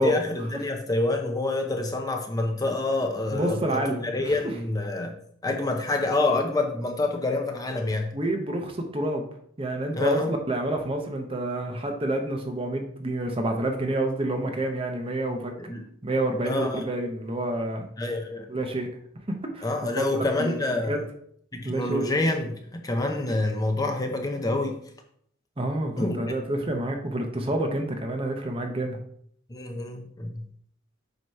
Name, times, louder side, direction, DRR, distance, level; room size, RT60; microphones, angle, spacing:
voice 1, 0.0-5.2 5.4-8.1 9.9-10.3 15.6-15.8 16.4-16.8 18.0-18.5 19.6-21.0 21.5-24.8 26.0-26.2 26.6-26.7 29.5-30.3, left 2 dB, 20° left, 3 dB, 0.7 m, -27 dB
voice 2, 3.3-4.5 8.1-9.2 9.6-15.5 16.0-17.9 18.5-18.9 19.5-19.7 20.0-20.6 20.9-21.0 21.6-22.1 25.6-29.0, right 1 dB, 25° right, 4 dB, 0.8 m, -28 dB
7.8 x 3.0 x 5.4 m, 0.66 s
head